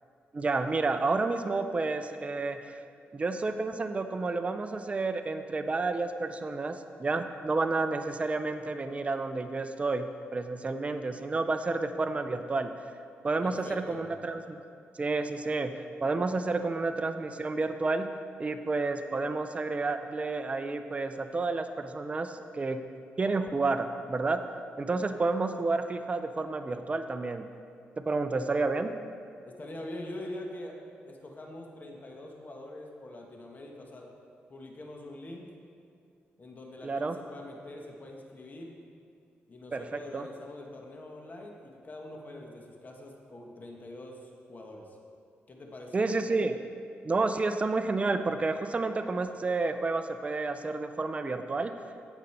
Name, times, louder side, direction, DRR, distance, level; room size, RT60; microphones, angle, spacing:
voice 1, 0.3-2.8 3.1-12.7 13.2-14.6 15.0-15.7 16.0-18.1 18.4-22.8 23.2-24.4 24.8-27.5 28.0-28.9 36.8-37.2 39.7-40.3 45.9-46.6 47.0-51.7, right 3 dB, 30° right, 8 dB, 0.5 m, -30 dB
voice 2, 13.4-14.1 29.4-30.8 31.1-34.1 34.5-35.5 36.4-38.8 39.5-45.0 45.5-46.2, left 1 dB, 40° left, 1 dB, 1.3 m, -44 dB
15.0 x 5.2 x 4.3 m, 2.4 s
cardioid pair, 80°, 4 cm